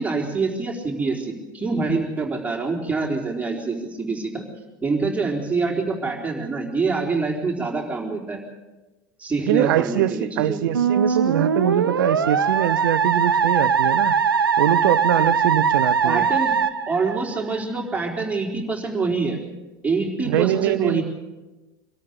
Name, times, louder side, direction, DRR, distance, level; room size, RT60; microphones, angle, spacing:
voice 1, 0.0-4.4 4.8-8.4 9.2-10.7 11.1-11.2 16.0-16.5 16.9-19.4 19.8-21.0, right 4 dB, 10° right, -1 dB, 4.1 m, -25 dB
voice 2, 9.4-14.2 14.6-16.3 20.2-21.0, right 12 dB, 65° right, 15 dB, 0.8 m, -23 dB
Musical instrument, 10.7-17.6, right 6 dB, 85° right, 1.1 m, -21 dB
24.5 x 13.0 x 8.4 m, 1.1 s
figure-of-eight pair, 85°, 12 cm